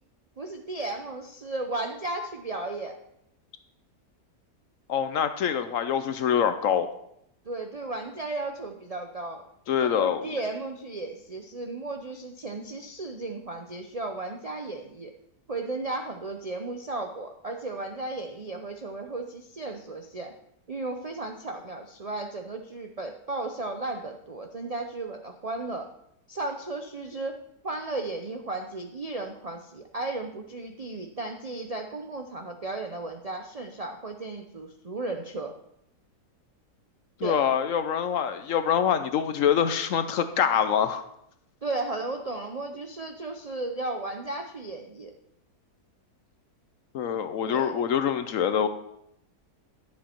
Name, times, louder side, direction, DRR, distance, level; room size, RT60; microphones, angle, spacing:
voice 1, 0.4-3.0 7.4-9.4 9.8-15.1 15.5-20.3 20.7-25.9 26.3-27.4 27.6-35.5 37.2-37.4 41.6-45.1 47.4-47.8, right 2 dB, 85° right, 4 dB, 0.3 m, -35 dB
voice 2, 4.9-6.9 9.7-10.3 37.2-41.0 46.9-48.7, left 8 dB, 65° left, 10 dB, 0.8 m, -25 dB
10.5 x 7.3 x 4.4 m, 0.76 s
omnidirectional pair, 1.7 m